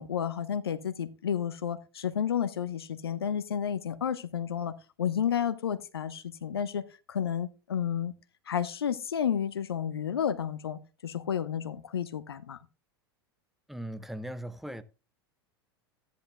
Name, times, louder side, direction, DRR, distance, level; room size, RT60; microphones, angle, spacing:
voice 1, 0.0-4.7 5.0-8.1 8.5-12.6, left 8 dB, 75° left, 0.9 m, -31 dB
voice 2, 13.7-14.8, right 1 dB, ahead, 1.0 m, -38 dB
14.5 x 10.5 x 2.2 m
figure-of-eight pair, 85°, 13 cm